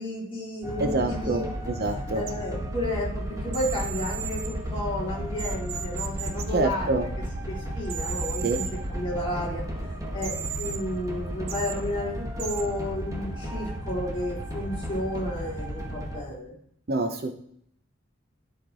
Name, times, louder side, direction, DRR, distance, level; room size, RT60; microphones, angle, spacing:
voice 1, 0.0-1.5 2.1-7.1 7.5-9.6 10.1-16.6, left 1 dB, 30° left, -5 dB, 3.0 m, -32 dB
sound 1, 0.6-16.2, equal, 15° right, 1.2 m, -34 dB
voice 2, 0.8-2.2 6.5-7.1 8.4-8.6 16.9-17.3, right 2 dB, 50° right, 6 dB, 0.8 m, -27 dB
sound 2, 2.3-2.4 3.5-4.5 5.4-6.4 7.8-8.7 10.2-10.8 11.5-11.7 12.4-12.6, right 9 dB, 85° right, 0.9 m, -35 dB
13.0 x 4.5 x 3.8 m, 0.67 s
head